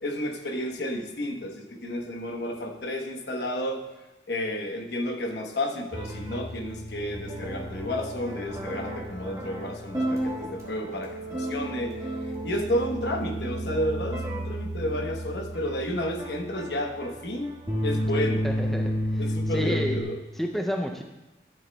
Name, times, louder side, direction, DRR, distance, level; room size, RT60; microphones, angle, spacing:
voice 1, 0.0-3.8 4.3-11.9 12.4-17.5 17.8-18.5 19.2-20.2, left 1 dB, 70° left, 3 dB, 1.0 m, -31 dB
sound 1, 5.9-20.0, equal, 20° right, 1.3 m, -32 dB
voice 2, 18.4-20.0 20.4-21.0, equal, ahead, 2 dB, 0.4 m, -30 dB
12.0 x 7.9 x 2.2 m, 1.1 s
head